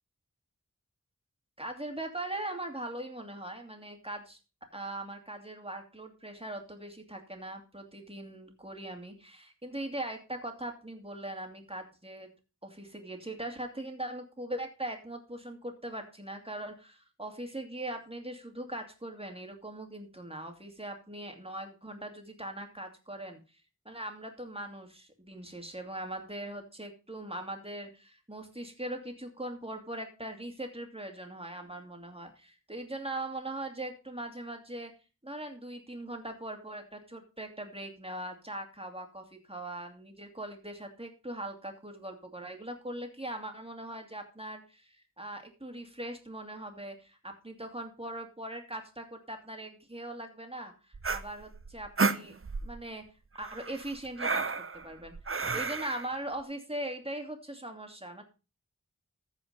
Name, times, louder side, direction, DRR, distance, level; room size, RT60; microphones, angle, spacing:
voice 1, 1.6-4.4 4.7-12.3 12.6-23.4 23.8-34.9 35.2-52.4 52.6-53.1 53.3-54.5 54.7-55.1 55.5-58.2, right 1 dB, 20° right, 4 dB, 2.6 m, -40 dB
sound 1, 50.9-52.8 53.4-56.1, right 4 dB, 45° right, 0.7 m, -32 dB
14.5 x 5.0 x 5.3 m, 0.31 s
wide cardioid pair, 45°, 32 cm